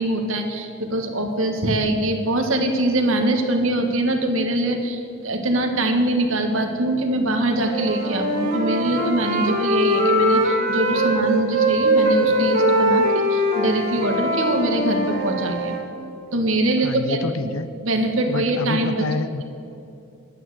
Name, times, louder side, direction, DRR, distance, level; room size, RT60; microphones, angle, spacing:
voice 1, 0.0-15.8 16.3-17.5 17.8-19.1, right 1 dB, 70° right, 4 dB, 1.6 m, -23 dB
Wind instrument woodwind instrument, 7.6-11.2 11.5-15.8, equal, 45° right, 3.3 m, -21 dB
voice 2, 16.8-17.7 18.3-19.4, left 3 dB, 80° left, 13 dB, 0.6 m, -27 dB
10.5 x 9.2 x 8.1 m, 2.7 s
head